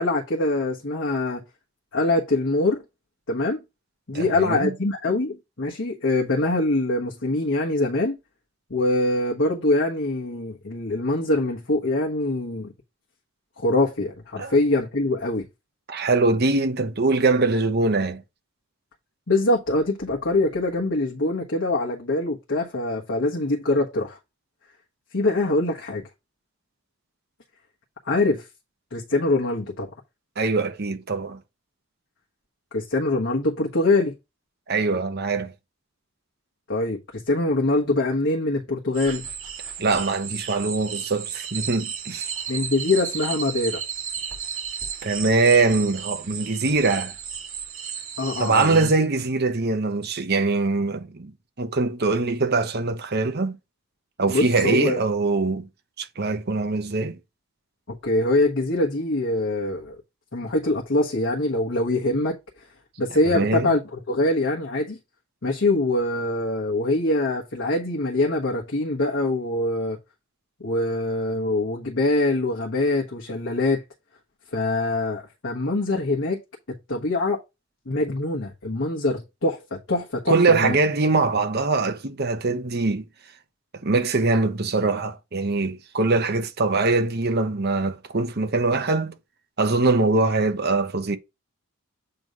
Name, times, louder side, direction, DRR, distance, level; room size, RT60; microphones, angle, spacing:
voice 1, 0.0-1.4 1.9-2.8 3.3-3.6 4.1-8.2 8.7-12.7 13.6-15.5 19.3-24.2 25.1-26.0 28.1-28.5 28.9-29.9 32.7-34.1 36.7-39.3 42.5-43.8 48.2-48.9 54.3-55.0 57.9-59.9 60.3-62.4 63.0-65.0 65.4-70.0 70.6-73.8 74.5-76.4 76.9-77.4 77.9-80.8, left 2 dB, 60° left, 1.2 m, -24 dB
voice 2, 4.1-4.7 14.4-14.5 15.9-18.2 30.4-31.4 34.7-35.5 39.8-42.3 45.0-47.1 48.4-51.3 51.6-53.6 54.2-55.7 56.0-57.2 63.2-63.8 80.3-83.0 83.8-89.1 89.6-91.2, right 3 dB, 50° right, 0.9 m, -22 dB
sound 1, 38.9-48.9, right 7 dB, 70° right, 2.6 m, -34 dB
7.8 x 3.1 x 5.2 m
head